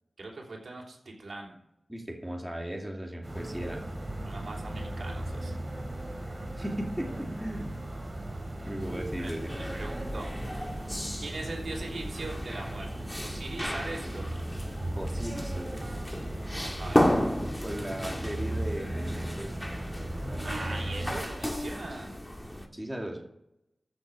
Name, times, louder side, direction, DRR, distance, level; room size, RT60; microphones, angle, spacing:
voice 1, 0.2-1.6 4.2-5.5 9.2-10.3 11.2-12.9 13.2-14.4 16.5-17.1 20.4-22.3, right 2 dB, 80° right, -1 dB, 3.3 m, -41 dB
voice 2, 1.9-3.8 6.5-7.7 8.7-9.5 14.9-15.8 17.6-19.6 22.7-23.2, right 1 dB, 10° right, 0 dB, 2.5 m, -37 dB
sound 1, 3.2-21.2, right 1 dB, 30° right, 2.8 m, -37 dB
sound 2, 8.8-22.7, left 1 dB, 10° left, 1.6 m, -34 dB
14.5 x 6.3 x 4.9 m, 0.82 s
wide cardioid pair, 60°, 0 cm